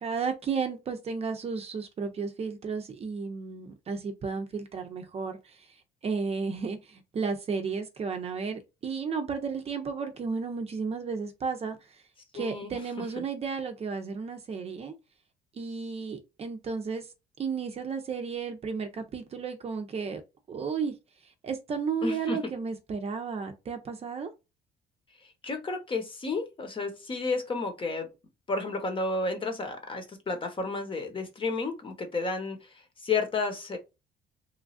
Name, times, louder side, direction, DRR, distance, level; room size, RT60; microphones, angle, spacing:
voice 1, 0.0-5.8 6.0-12.0 12.3-14.9 15.5-17.1 17.4-20.2 20.5-20.9 21.2-24.3, right 5 dB, 35° right, 0.6 m, -33 dB
voice 2, 12.3-13.0 22.0-22.4 25.4-28.1 28.5-33.8, left 3 dB, 30° left, 1.0 m, -32 dB
3.1 x 2.4 x 2.3 m
cardioid pair, 110°, 17 cm